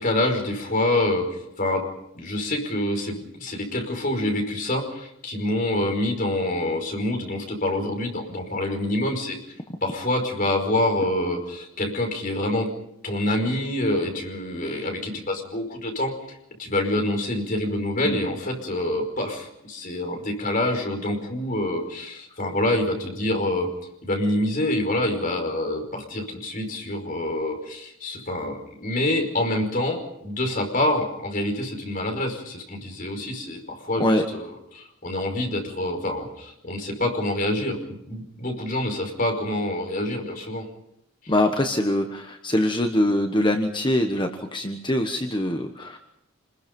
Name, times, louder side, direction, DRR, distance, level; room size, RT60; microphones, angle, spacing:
voice 1, 0.0-1.8 2.1-9.4 9.8-12.7 13.0-23.7 24.0-40.7 41.2-41.3, left 1 dB, 40° left, 3 dB, 5.3 m, -26 dB
voice 2, 41.3-46.0, left 1 dB, 25° left, 5 dB, 1.3 m, -23 dB
28.0 x 21.0 x 5.4 m, 0.80 s
head